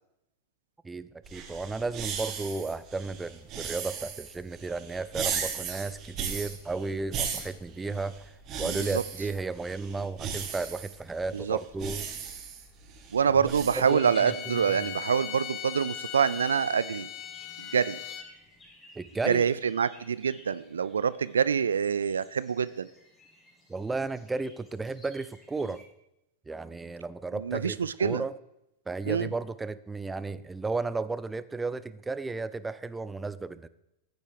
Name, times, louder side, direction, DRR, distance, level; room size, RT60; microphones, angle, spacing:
voice 1, 0.8-8.3 8.6-12.1 13.8-14.8 19.0-19.4 23.7-25.8 26.5-28.3 28.9-33.7, right 3 dB, 10° right, 15 dB, 0.6 m, -34 dB
sound 1, 1.2-13.8, right 7 dB, 35° right, 2.0 m, -37 dB
voice 2, 8.6-9.0 11.3-11.6 13.1-17.1 17.6-18.0 19.3-22.9 27.3-28.2 29.1-29.3, right 7 dB, 70° right, 17 dB, 0.4 m, -26 dB
Bowed string instrument, 13.8-18.3, left 11 dB, 30° left, 1.1 m, -39 dB
sound 2, 17.1-25.8, left 1 dB, 15° left, 2.9 m, -57 dB
14.0 x 9.2 x 5.0 m, 0.85 s
figure-of-eight pair, 90°, 0 cm